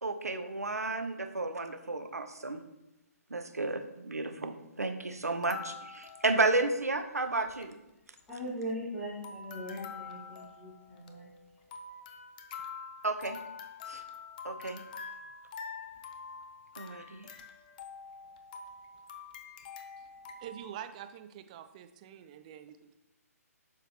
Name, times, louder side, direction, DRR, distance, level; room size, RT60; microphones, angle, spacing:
voice 1, 0.0-2.6 3.3-7.8 13.0-13.4 13.9-14.0 14.4-14.8 16.8-17.3, right 3 dB, 75° right, 7 dB, 0.9 m, -32 dB
sound 1, 5.2-6.9 7.2-7.3 7.5-7.7 8.2-8.9 9.2-20.6, left 5 dB, 30° left, 0.6 m, -46 dB
voice 2, 8.3-11.3, equal, 10° left, -12 dB, 2.9 m, -40 dB
voice 3, 20.4-22.9, right 10 dB, 25° right, 8 dB, 0.5 m, -46 dB
11.5 x 4.9 x 3.0 m, 0.93 s
figure-of-eight pair, 130°, 9 cm